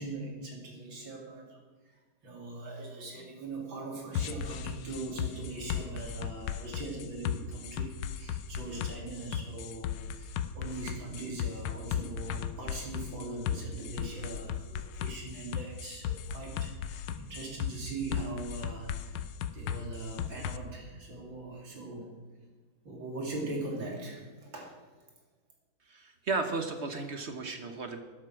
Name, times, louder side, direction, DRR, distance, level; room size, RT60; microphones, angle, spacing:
voice 1, 0.0-1.6 1.9-19.3 19.5-22.1 22.9-24.7, right 2 dB, 70° right, 0 dB, 3.6 m, -41 dB
sound 1, 4.2-20.6, left 8 dB, 85° left, 1.5 m, -36 dB
voice 2, 25.9-28.0, right 3 dB, 45° right, 7 dB, 1.0 m, -34 dB
12.5 x 10.5 x 6.3 m, 1.4 s
omnidirectional pair, 2.2 m